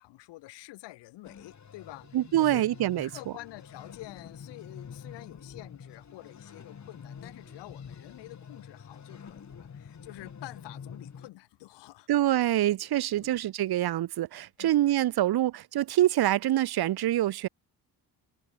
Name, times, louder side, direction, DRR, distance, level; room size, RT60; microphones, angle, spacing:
voice 1, 0.0-2.7 3.0-12.2 13.2-13.4 14.6-14.8, left 18 dB, 90° left, 6.8 m, -48 dB
sound 1, 1.2-11.3, left 7 dB, 40° left, 3.3 m, -47 dB
voice 2, 2.1-3.1 12.1-17.5, right 13 dB, 65° right, 1.3 m, -25 dB
supercardioid pair, 75°, 41 cm